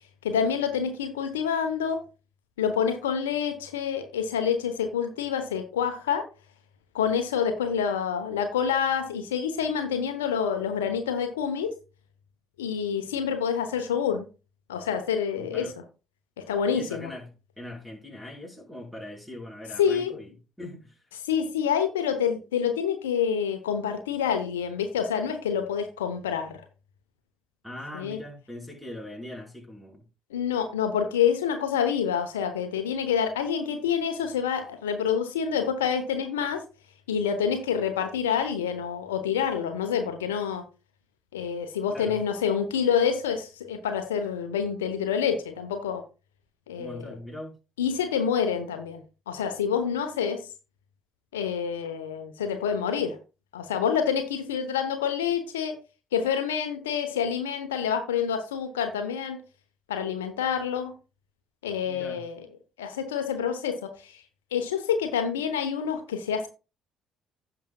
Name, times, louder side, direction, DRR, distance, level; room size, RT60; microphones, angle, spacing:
voice 1, 0.2-2.0 2.6-6.2 6.9-11.7 12.6-14.2 14.7-15.7 16.5-17.1 19.8-20.1 21.2-26.6 27.9-28.2 30.3-36.6 37.1-40.6 41.3-46.0 46.7-47.0 47.8-50.4 51.3-53.2 53.5-55.8 56.1-59.4 59.9-60.9 61.6-62.4 62.8-64.2 64.5-66.5, left 7 dB, 75° left, 0.9 m, -27 dB
voice 2, 15.4-15.7 16.7-21.0 27.6-30.1 41.9-42.2 46.8-47.5 61.8-62.3, left 1 dB, ahead, 4.5 m, -41 dB
16.0 x 5.9 x 2.3 m
figure-of-eight pair, 45°, 0 cm